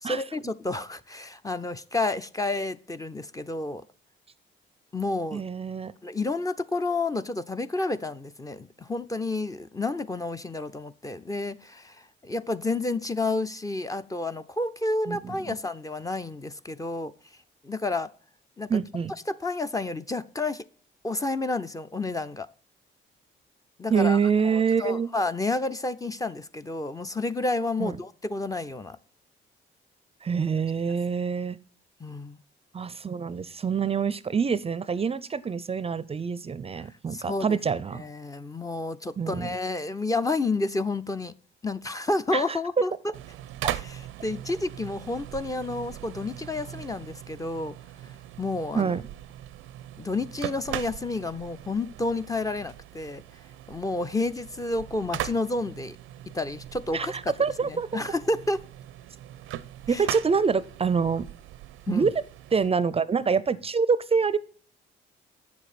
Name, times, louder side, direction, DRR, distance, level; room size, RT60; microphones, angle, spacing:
voice 1, 0.0-3.8 4.9-5.4 6.0-17.1 17.6-18.1 18.6-18.7 19.3-20.6 21.0-22.5 23.8-24.2 24.4-29.0 32.0-32.4 37.1-37.6 37.9-41.3 41.6-42.9 43.7-43.8 44.2-47.7 48.4-48.9 50.0-53.2 53.7-56.0 56.3-57.3 57.6-58.6 59.9-60.0 61.9-62.1, left 2 dB, 15° left, 0.5 m, -30 dB
voice 2, 5.3-5.9 15.1-15.6 18.7-19.1 23.9-25.1 27.8-28.0 30.2-31.6 32.7-38.0 39.2-39.6 42.3-42.8 43.6-43.7 48.7-49.0 56.9-58.0 59.9-61.3 61.9-62.1 62.5-64.4, right 6 dB, 30° right, 0.5 m, -26 dB
sound 1, 43.1-62.7, right 13 dB, 90° right, 0.6 m, -40 dB
8.4 x 7.0 x 4.2 m
cardioid pair, 90°, 20 cm